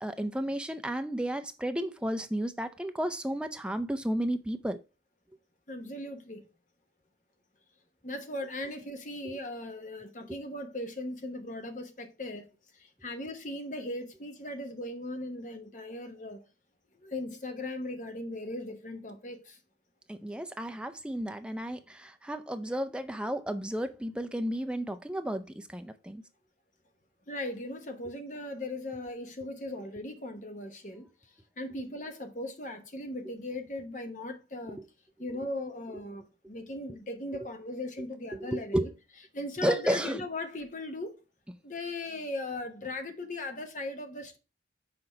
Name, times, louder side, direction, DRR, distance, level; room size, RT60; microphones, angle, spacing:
voice 1, 0.0-4.8 9.2-9.4 20.1-26.2 38.4-38.9 39.6-40.2, right 1 dB, 5° right, 0.4 m, -32 dB
voice 2, 5.7-6.5 8.0-12.5 12.7-16.4 17.0-19.6 27.3-31.1 31.6-34.8 35.2-38.9 39.3-41.2 41.6-44.4, left 1 dB, 45° left, 1.0 m, -38 dB
5.9 x 3.9 x 5.5 m
head